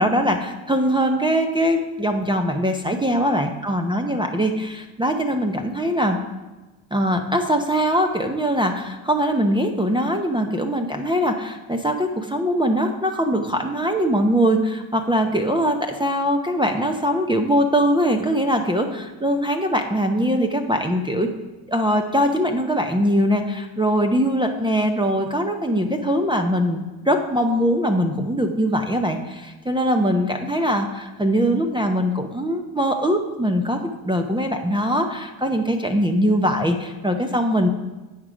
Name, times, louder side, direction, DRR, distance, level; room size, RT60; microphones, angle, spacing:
voice 1, 0.0-6.2 6.9-21.3 21.7-37.7, equal, 10° right, 2 dB, 0.7 m, -22 dB
9.1 x 5.0 x 4.9 m, 1.1 s
supercardioid pair, 65°, 50 cm